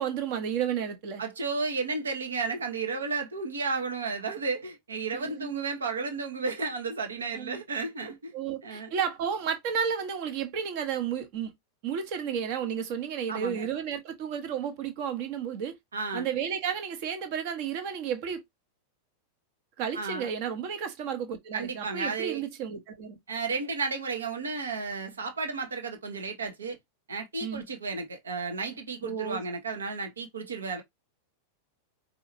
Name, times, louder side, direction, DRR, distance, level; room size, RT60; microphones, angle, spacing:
voice 1, 0.0-1.2 5.1-5.6 7.3-7.6 8.3-11.5 11.8-15.7 16.1-18.4 19.8-23.2 27.4-27.6 29.0-29.4, right 7 dB, 45° right, 1.1 m, -32 dB
voice 2, 1.2-8.3 8.6-8.9 13.3-13.7 15.9-16.3 19.9-20.3 21.5-22.5 23.3-26.8 27.1-30.8, right 4 dB, 70° right, 1.2 m, -33 dB
4.8 x 2.9 x 2.7 m
figure-of-eight pair, 90°, 0 cm